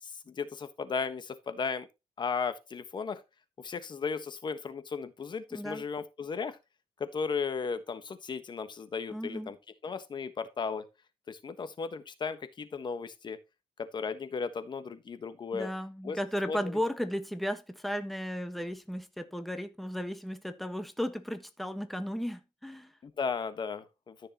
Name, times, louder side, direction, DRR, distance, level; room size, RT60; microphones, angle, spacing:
voice 1, 0.0-1.9 2.2-3.2 3.6-6.6 7.0-9.6 9.8-10.8 11.3-13.4 13.8-15.7 16.0-16.2 16.5-16.8 23.0-24.3, left 5 dB, 45° left, 1.3 m, -35 dB
voice 2, 5.5-5.8 9.1-9.5 15.5-22.9, equal, ahead, 1.4 m, -35 dB
14.0 x 6.6 x 3.0 m
cardioid pair, 90°, 11 cm